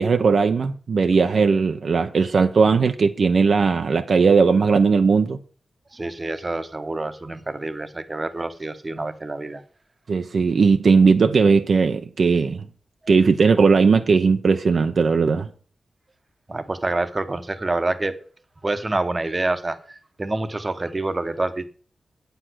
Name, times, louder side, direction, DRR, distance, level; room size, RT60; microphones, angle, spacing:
voice 1, 0.0-5.4 10.1-12.6 13.1-15.5, right 5 dB, 55° right, 0.7 m, -18 dB
voice 2, 5.9-9.6 16.5-18.1 18.6-21.6, right 2 dB, 25° right, 1.0 m, -27 dB
8.9 x 8.0 x 6.2 m
wide cardioid pair, 145°, 0 cm